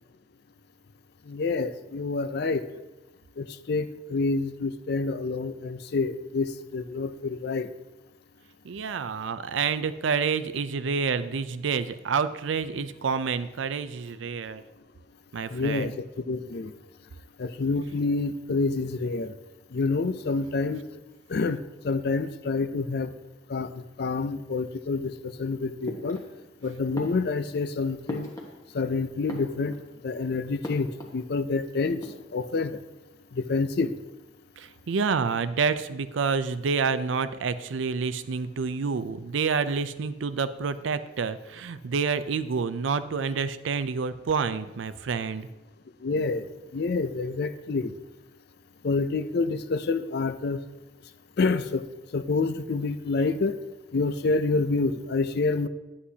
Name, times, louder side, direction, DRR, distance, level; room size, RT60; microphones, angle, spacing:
voice 1, 1.3-2.6 3.4-7.7 15.5-16.7 17.4-19.3 19.7-20.8 21.3-23.1 23.5-26.2 26.6-28.3 28.7-29.8 30.0-32.0 32.3-32.8 33.3-33.9 46.0-46.4 46.7-47.9 48.8-50.6 51.4-51.8 52.1-53.5 53.9-55.7, left 3 dB, 60° left, 13 dB, 0.4 m, -28 dB
voice 2, 8.6-14.6 15.3-15.9 34.6-45.5, right 5 dB, 85° right, 13 dB, 0.4 m, -28 dB
sound 1, 25.8-26.6 26.9-28.9 29.2-30.0 30.6-31.2 31.5-31.6 31.9-32.6, left 1 dB, 20° left, 1.2 m, -40 dB
9.6 x 8.5 x 2.8 m, 1.0 s
head